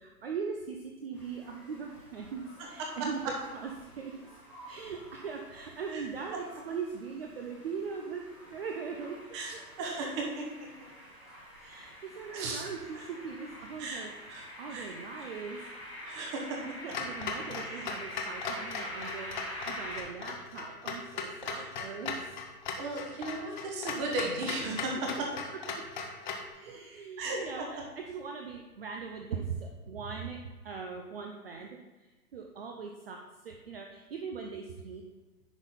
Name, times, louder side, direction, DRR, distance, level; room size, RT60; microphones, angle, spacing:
voice 1, 0.0-3.2 3.5-3.7 4.0-4.4 4.7-9.2 11.5-15.9 16.6-22.4 25.5-25.8 26.6-35.0, right 5 dB, 40° right, 2 dB, 0.6 m, -40 dB
sound 1, 1.1-20.0, equal, ahead, 1.3 m, -47 dB
voice 2, 9.3-10.7 12.3-12.7 13.8-14.0 14.3-14.4 14.7-14.9 15.2-15.3 16.0-16.6 17.5-17.7 21.5-21.6 22.8-25.1 27.2-27.4, right 2 dB, 20° right, 0 dB, 1.0 m, -36 dB
Clock, 16.9-26.5, left 5 dB, 30° left, 0.7 m, -38 dB
10.5 x 4.0 x 4.0 m, 1.2 s
hypercardioid pair, 150°, 47 cm